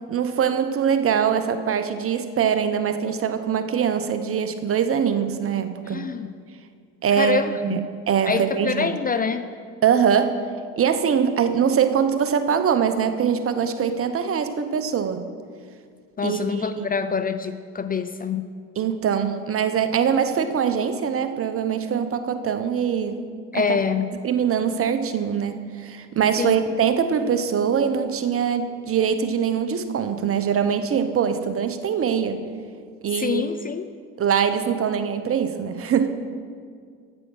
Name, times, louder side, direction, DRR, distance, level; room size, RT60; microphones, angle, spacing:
voice 1, 0.1-6.0 7.0-8.9 9.8-10.4 10.8-15.2 16.2-16.8 18.8-23.2 23.5-23.8 24.2-32.4 33.0-33.4 34.2-36.1, right 7 dB, 40° right, 9 dB, 0.9 m, -23 dB
voice 2, 5.9-6.3 7.2-7.5 8.3-9.5 16.2-18.5 23.5-24.1 26.4-26.6 33.2-33.9, left 6 dB, 25° left, 10 dB, 0.5 m, -25 dB
8.7 x 8.0 x 6.3 m, 2.1 s
hypercardioid pair, 70°, 34 cm